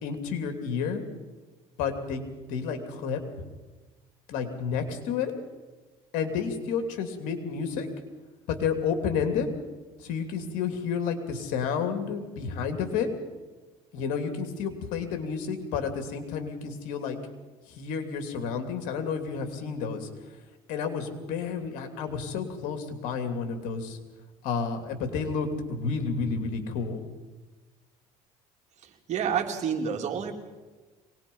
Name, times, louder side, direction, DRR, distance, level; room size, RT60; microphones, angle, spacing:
voice 1, 0.0-1.0 1.8-3.2 4.3-5.3 6.1-7.9 8.5-9.5 10.0-13.1 13.9-17.2 17.7-20.1 20.7-24.0 24.4-27.0, left 6 dB, 75° left, 6 dB, 2.9 m, -30 dB
voice 2, 28.8-30.3, right 7 dB, 55° right, 3 dB, 3.0 m, -29 dB
24.0 x 19.5 x 5.5 m, 1.3 s
supercardioid pair, 85°, 14 cm